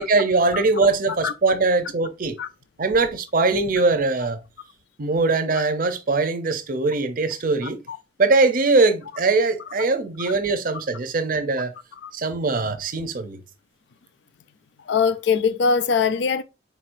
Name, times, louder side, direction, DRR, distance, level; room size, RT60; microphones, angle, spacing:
voice 1, 0.0-2.4 2.8-4.4 5.0-7.8 8.2-11.7 12.1-13.4, right 3 dB, 50° right, 0.6 m, -21 dB
voice 2, 7.6-8.0 12.0-12.1 14.9-16.4, left 5 dB, 70° left, 0.4 m, -22 dB
4.4 x 4.1 x 2.5 m
head